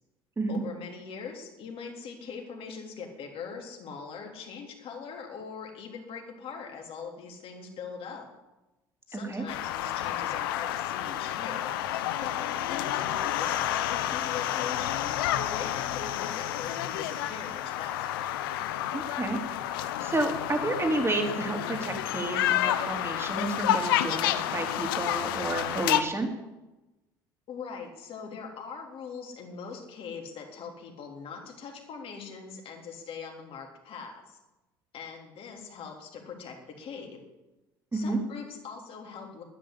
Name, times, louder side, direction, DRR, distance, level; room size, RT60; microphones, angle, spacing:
voice 1, 0.5-8.3 9.1-11.7 12.2-18.3 27.5-34.4 34.9-37.2 37.9-39.4, left 5 dB, 50° left, 1 dB, 3.7 m, -41 dB
voice 2, 9.1-9.4 18.9-19.4 19.6-26.3 37.9-38.2, right 2 dB, 20° right, 3 dB, 3.8 m, -31 dB
sound 1, 9.5-26.0, left 12 dB, 75° left, 0.9 m, -30 dB
11.5 x 10.0 x 10.0 m, 1.0 s
hypercardioid pair, 60°, 12 cm